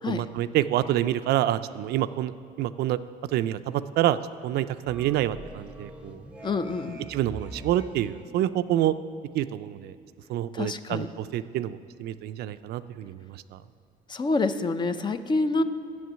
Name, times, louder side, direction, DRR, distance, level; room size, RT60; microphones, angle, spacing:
voice 1, 0.1-2.3 2.6-3.0 3.3-4.2 4.4-6.2 7.1-9.0 9.3-10.0 10.3-13.6, right 13 dB, 70° right, 13 dB, 0.4 m, -27 dB
sound 1, 4.9-8.2, right 2 dB, 5° right, 0.8 m, -43 dB
voice 2, 6.4-7.1 10.5-11.1 14.1-15.6, left 3 dB, 25° left, 11 dB, 0.5 m, -27 dB
9.5 x 7.0 x 8.9 m, 2.2 s
cardioid pair, 110°, 17 cm